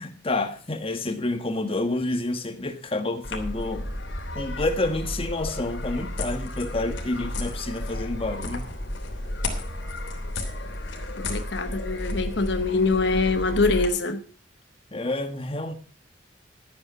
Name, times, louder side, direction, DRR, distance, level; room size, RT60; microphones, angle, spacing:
voice 1, 0.0-3.9 4.3-8.7 14.9-15.7, left 2 dB, 30° left, 1.5 m, -29 dB
sound 1, 3.2-13.9, left 1 dB, 80° left, 3.2 m, -32 dB
voice 2, 11.2-14.2, left 3 dB, 65° left, 1.0 m, -24 dB
13.0 x 9.5 x 5.7 m
head